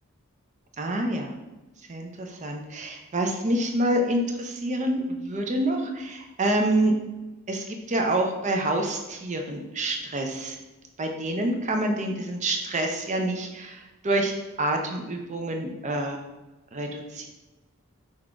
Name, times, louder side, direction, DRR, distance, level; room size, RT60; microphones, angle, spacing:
voice 1, 0.8-1.3 1.9-6.9 7.5-10.6 11.0-14.3 14.6-16.2 16.7-17.3, right 1 dB, 35° right, 3 dB, 0.6 m, -27 dB
5.5 x 2.5 x 3.4 m, 1.1 s
head